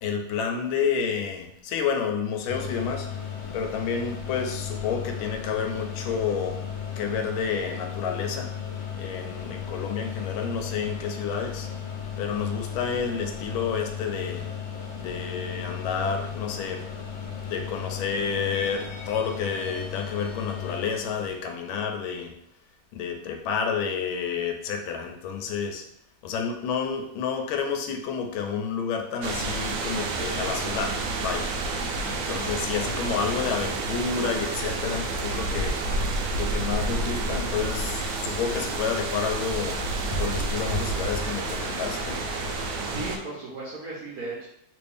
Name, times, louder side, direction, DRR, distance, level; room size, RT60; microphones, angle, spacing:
voice 1, 0.0-3.1 3.5-6.6 7.0-8.5 8.9-11.7 12.2-14.5 15.0-16.9 17.4-22.4 22.9-25.8 26.2-31.5 32.1-35.9 36.4-39.8 40.2-42.3, left 6 dB, 90° left, 5 dB, 1.4 m, -30 dB
sound 1, 2.5-21.4, left 7 dB, 70° left, 1.2 m, -35 dB
sound 2, 29.2-43.2, right 3 dB, 85° right, 1.4 m, -30 dB
sound 3, 37.4-42.9, equal, 45° left, 1.3 m, -35 dB
voice 2, 42.8-44.5, right 3 dB, 60° right, -6 dB, 1.1 m, -36 dB
3.4 x 2.6 x 3.4 m, 0.73 s
omnidirectional pair, 2.2 m